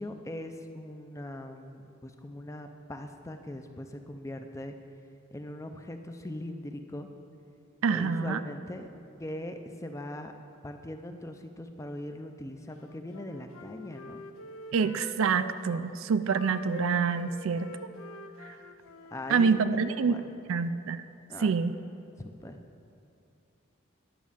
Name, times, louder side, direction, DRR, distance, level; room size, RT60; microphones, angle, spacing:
voice 1, 0.0-4.8 5.3-7.1 7.9-8.9 9.2-10.3 10.6-14.2 19.1-20.2 21.3-21.5 22.2-22.6, left 1 dB, 15° left, 6 dB, 0.5 m, -40 dB
voice 2, 7.8-8.4 14.7-17.7 18.5-18.6 19.3-20.2 20.5-21.0 21.4-21.8, right 5 dB, 75° right, 12 dB, 0.4 m, -26 dB
Wind instrument woodwind instrument, 12.8-15.8 16.3-19.6, left 2 dB, 85° left, 0.6 m, -45 dB
10.5 x 6.2 x 7.3 m, 2.6 s
head